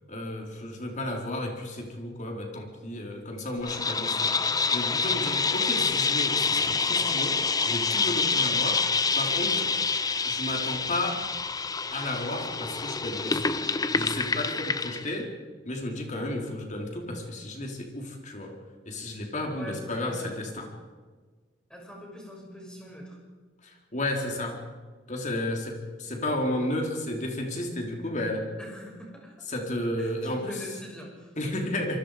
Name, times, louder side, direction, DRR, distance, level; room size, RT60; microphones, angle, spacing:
voice 1, 0.1-9.7 10.3-11.3 11.9-13.5 13.9-15.3 15.7-18.6 18.9-20.7 23.6-24.6 25.1-28.5 29.5-30.5 31.4-32.0, left 1 dB, 40° left, 2 dB, 4.1 m, -33 dB
sound 1, 3.6-15.1, left 4 dB, 20° left, 0.7 m, -27 dB
voice 2, 19.5-20.4 21.7-23.2 28.6-29.5 30.0-31.4, equal, 5° left, -2 dB, 7.1 m, -43 dB
27.0 x 23.5 x 5.1 m, 1.4 s
head